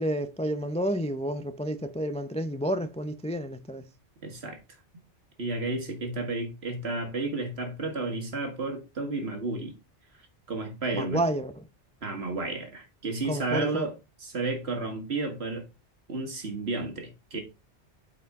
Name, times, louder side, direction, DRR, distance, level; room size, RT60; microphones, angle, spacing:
voice 1, 0.0-3.9 10.9-11.7 13.3-13.9, right 1 dB, 10° left, 0.4 m, -30 dB
voice 2, 4.2-4.6 5.4-9.7 10.5-11.2 12.0-13.9 14.2-15.7 16.1-17.4, right 3 dB, 60° right, 1.9 m, -32 dB
8.3 x 4.7 x 3.6 m
omnidirectional pair, 1.2 m